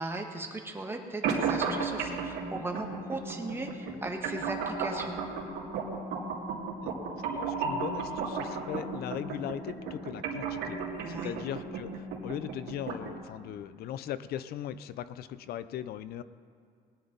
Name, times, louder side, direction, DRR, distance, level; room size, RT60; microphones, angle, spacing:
voice 1, 0.0-5.2 11.0-11.3, right 2 dB, 15° right, 2 dB, 1.6 m, -37 dB
sound 1, 1.2-13.2, right 5 dB, 80° right, 2.5 m, -34 dB
voice 2, 7.3-10.8 11.1-16.2, left 10 dB, 70° left, 14 dB, 0.6 m, -39 dB
20.5 x 10.0 x 4.0 m, 2.3 s
cardioid pair, 110°, 17 cm